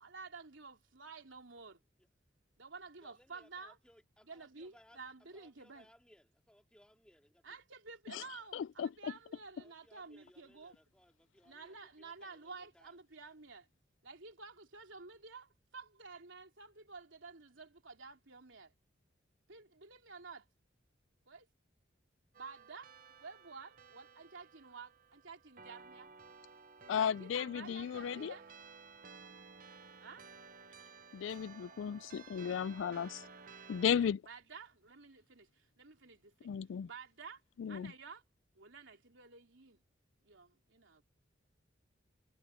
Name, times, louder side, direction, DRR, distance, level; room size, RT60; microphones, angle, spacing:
voice 1, 0.0-1.8 2.6-3.8 4.3-5.9 7.4-10.7 11.4-13.7 14.0-18.7 19.5-20.5 21.3-21.5 22.3-22.9 23.2-26.1 26.9-28.5 30.0-30.2 33.8-36.5 36.8-37.4 37.7-38.2 38.5-39.8 40.2-41.0, right 4 dB, 80° right, 3.3 m, -52 dB
voice 2, 3.0-5.0 5.3-7.6 9.6-13.0, equal, 5° left, 2.5 m, -65 dB
voice 3, 8.5-8.9 26.9-28.4 31.1-33.3 33.7-34.2 36.4-36.9 37.6-37.9, left 8 dB, 80° left, 0.3 m, -35 dB
sound 1, 22.3-34.1, right 5 dB, 45° right, 0.9 m, -55 dB
head